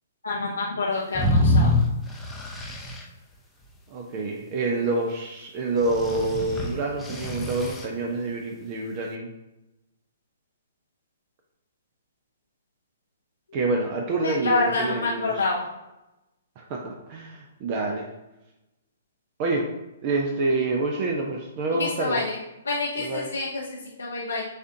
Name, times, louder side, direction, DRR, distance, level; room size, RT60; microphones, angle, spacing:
voice 1, 0.2-1.7 14.2-15.6 21.7-22.4 22.6-24.5, left 3 dB, 80° left, -4 dB, 0.7 m, -27 dB
sound 1, 1.1-3.0 5.8-7.9, left 1 dB, 10° left, 0.6 m, -25 dB
voice 2, 3.9-9.3 13.5-15.4 16.6-18.1 19.4-19.7 20.0-22.2 23.0-23.3, right 2 dB, 40° right, 0 dB, 0.5 m, -27 dB
6.5 x 2.5 x 2.7 m, 0.97 s
hypercardioid pair, 125°, 0 cm